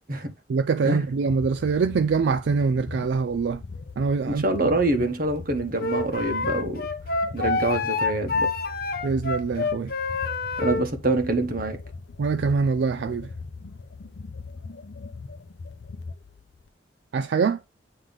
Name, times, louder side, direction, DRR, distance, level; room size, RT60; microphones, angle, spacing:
voice 1, 0.5-3.6 4.0-4.4 9.0-9.9 12.2-13.3 17.1-17.6, right 5 dB, 80° right, 0.4 m, -24 dB
sound 1, 1.0-16.7, left 4 dB, 85° left, 0.6 m, -40 dB
voice 2, 4.2-6.8 7.3-8.5 10.6-11.8, right 2 dB, 55° right, 1.3 m, -25 dB
Wind instrument woodwind instrument, 5.8-10.9, left 3 dB, 60° left, 1.1 m, -27 dB
9.0 x 3.2 x 3.9 m
head